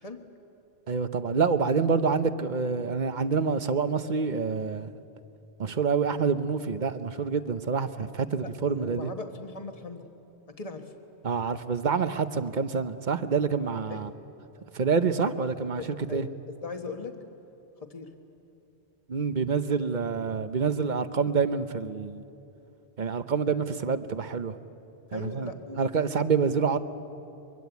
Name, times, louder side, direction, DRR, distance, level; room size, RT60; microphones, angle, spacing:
voice 1, 0.9-4.9 5.6-9.1 11.2-14.1 14.7-16.3 19.1-22.2 23.0-24.5 25.1-25.5 25.8-26.8, right 5 dB, 45° right, 11 dB, 0.9 m, -27 dB
voice 2, 8.4-10.1 10.5-10.9 13.9-14.0 15.7-17.1 17.8-18.1 25.1-25.9, left 3 dB, 35° left, 5 dB, 1.5 m, -39 dB
23.5 x 23.0 x 8.2 m, 2.8 s
omnidirectional pair, 1.1 m